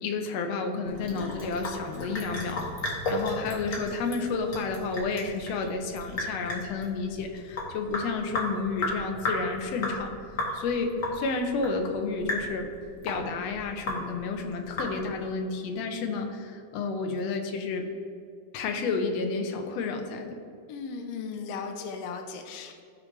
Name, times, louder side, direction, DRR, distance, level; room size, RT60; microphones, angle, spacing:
voice 1, 0.0-2.6 3.1-10.1 10.5-12.7 13.0-17.9 18.5-20.4, left 4 dB, 75° left, 4 dB, 1.6 m, -31 dB
Sink (filling or washing) / Drip, 0.8-15.3, left 1 dB, 40° left, 1.2 m, -34 dB
voice 2, 20.7-22.8, left 5 dB, 90° left, 5 dB, 1.3 m, -37 dB
13.5 x 4.8 x 3.2 m, 2.4 s
omnidirectional pair, 3.6 m